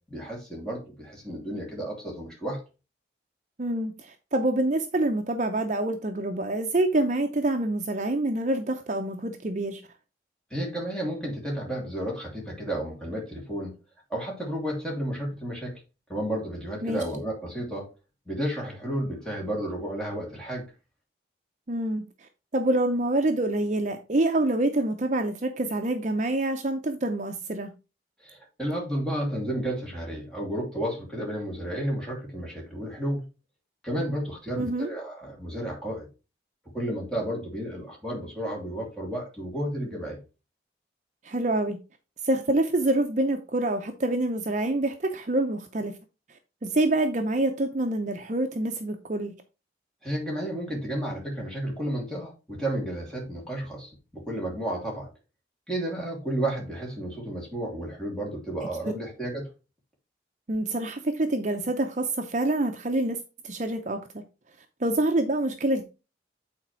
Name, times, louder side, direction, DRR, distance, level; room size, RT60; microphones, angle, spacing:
voice 1, 0.1-2.6 10.5-13.8 14.1-15.7 16.1-17.9 18.2-20.6 28.2-33.3 33.8-36.1 36.7-40.2 50.0-55.1 55.7-59.4, right 1 dB, 5° left, 2.9 m, -32 dB
voice 2, 3.6-9.8 16.8-17.0 21.7-27.7 34.6-34.9 41.2-41.8 42.2-45.9 46.6-49.3 60.5-63.2 63.4-64.2 64.8-65.9, right 2 dB, 40° right, 0.6 m, -26 dB
8.6 x 4.1 x 4.4 m
head